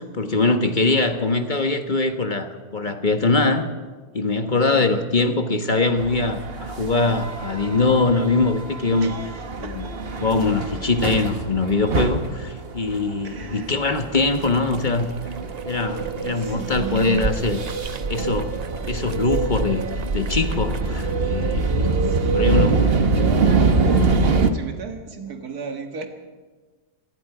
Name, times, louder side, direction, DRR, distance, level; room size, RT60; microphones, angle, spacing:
voice 1, 0.0-3.7 4.1-9.1 9.6-9.9 10.2-15.1 15.6-17.6 18.1-18.6 18.9-19.8 20.1-21.9 22.3-22.7, left 3 dB, 30° left, 6 dB, 1.4 m, -22 dB
voice 2, 4.6-4.9 9.0-10.0 13.2-13.7 16.3-17.4 22.0-26.1, right 5 dB, 70° right, 4 dB, 2.3 m, -36 dB
sound 1, 6.0-24.5, right 3 dB, 40° right, 1.4 m, -24 dB
sound 2, 14.2-21.2, right 5 dB, 90° right, 0.3 m, -37 dB
26.0 x 20.5 x 4.9 m, 1.4 s
omnidirectional pair, 1.7 m